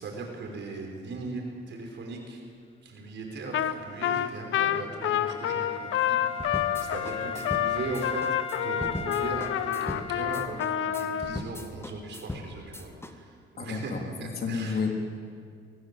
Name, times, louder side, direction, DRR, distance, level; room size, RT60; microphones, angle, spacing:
voice 1, 0.0-2.4 2.8-8.2 8.6-14.8, right 3 dB, 65° right, 1 dB, 5.6 m, -38 dB
Trumpet, 3.5-3.8 4.0-11.4, left 11 dB, 80° left, 0.9 m, -28 dB
Wind instrument woodwind instrument, 3.7-11.5, left 5 dB, 30° left, 1.1 m, -40 dB
sound 1, 6.4-13.1, left 1 dB, 10° left, 1.8 m, -39 dB
voice 2, 13.6-14.9, left 5 dB, 50° left, 2 dB, 3.4 m, -31 dB
24.5 x 17.5 x 7.8 m, 2.1 s
cardioid pair, 90°, 20 cm